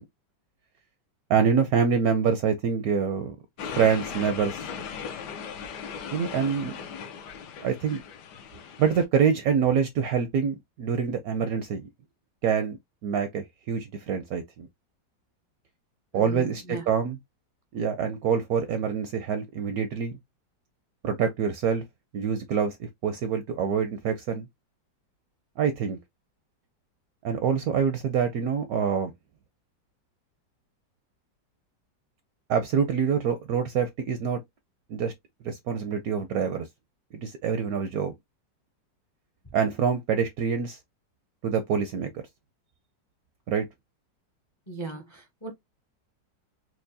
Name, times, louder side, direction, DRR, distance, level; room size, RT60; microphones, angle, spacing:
voice 1, 1.3-3.4 3.8-4.6 6.1-6.8 7.6-8.0 8.8-11.9 12.4-12.8 13.0-14.7 16.1-17.2 17.7-20.2 21.0-21.8 22.1-24.5 25.6-26.0 27.2-29.1 32.5-34.4 34.9-35.1 35.4-36.7 37.1-38.1 39.5-40.8 41.4-42.2 43.5-43.7, right 7 dB, 75° right, 0.8 m, -26 dB
sound 1, 3.6-9.1, left 6 dB, 70° left, 1.2 m, -38 dB
voice 2, 16.1-16.8 44.7-45.5, right 3 dB, 35° left, 0.4 m, -37 dB
4.5 x 2.1 x 2.6 m
omnidirectional pair, 2.0 m